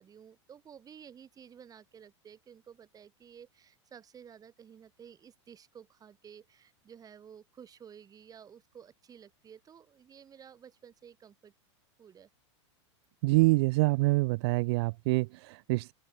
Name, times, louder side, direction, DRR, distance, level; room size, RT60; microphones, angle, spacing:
voice 1, 0.0-11.5 12.0-12.3, right 8 dB, 25° right, 4.2 m, -53 dB
voice 2, 13.2-15.9, right 23 dB, 60° right, 0.5 m, -26 dB
hypercardioid pair, 125°, 15 cm